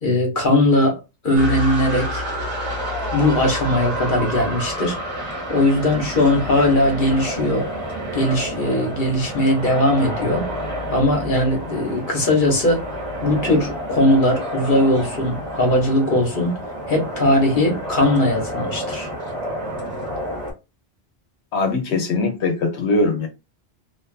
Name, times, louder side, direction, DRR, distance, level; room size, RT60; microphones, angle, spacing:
voice 1, 0.0-2.2 3.1-5.0 5.5-7.7 8.1-10.5 10.9-12.9 13.2-16.6 16.9-19.1, left 1 dB, 50° left, 1.1 m, -19 dB
sound 1, 1.3-20.5, equal, 40° right, 1.1 m, -29 dB
voice 2, 21.5-23.3, left 3 dB, 75° left, 0.9 m, -21 dB
2.6 x 2.4 x 2.3 m
omnidirectional pair, 1.1 m